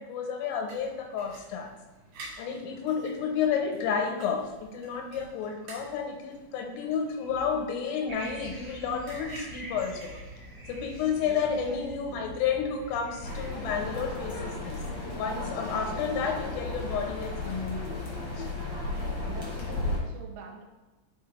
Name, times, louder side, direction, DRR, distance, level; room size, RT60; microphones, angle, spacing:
voice 1, 0.1-1.7 2.4-4.4 4.7-6.1 6.5-10.1 10.7-14.8 15.2-17.9, left 6 dB, 85° left, 3 dB, 3.4 m, -31 dB
sound 1, 0.7-10.7, right 2 dB, 55° right, 2.5 m, -51 dB
sound 2, 8.1-13.5, right 1 dB, 40° right, 1.6 m, -44 dB
voice 2, 11.2-12.4 18.9-20.6, right 5 dB, 85° right, 1 dB, 3.4 m, -45 dB
sound 3, 13.2-20.0, left 2 dB, 65° left, 1.3 m, -34 dB
11.0 x 4.2 x 3.3 m, 1.2 s
omnidirectional pair, 5.7 m